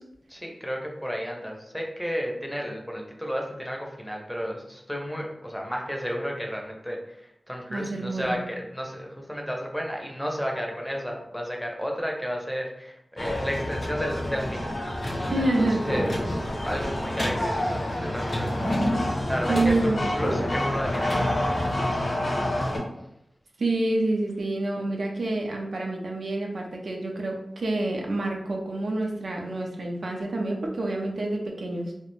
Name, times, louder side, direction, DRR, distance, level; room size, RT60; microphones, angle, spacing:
voice 1, 0.3-18.6 19.3-22.6, equal, 5° left, 0 dB, 0.5 m, -33 dB
voice 2, 7.7-8.4 15.3-16.1 19.5-20.1 23.6-32.0, right 2 dB, 85° right, 0 dB, 0.4 m, -28 dB
sound 1, 13.2-22.8, left 1 dB, 60° left, 0.7 m, -27 dB
2.3 x 2.1 x 3.0 m, 0.81 s
wide cardioid pair, 65°, 0 cm